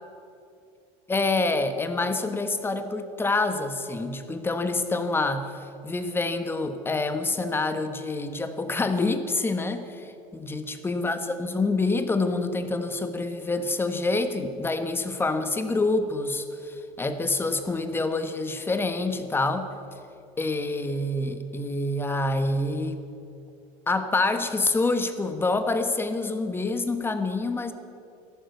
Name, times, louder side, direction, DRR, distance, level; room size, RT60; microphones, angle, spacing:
voice 1, 1.1-5.5 5.8-9.9 10.3-19.7 20.4-23.0 23.9-27.7, left 3 dB, 15° left, 9 dB, 1.2 m, -27 dB
14.0 x 11.5 x 8.2 m, 2.7 s
supercardioid pair, 125°, 16 cm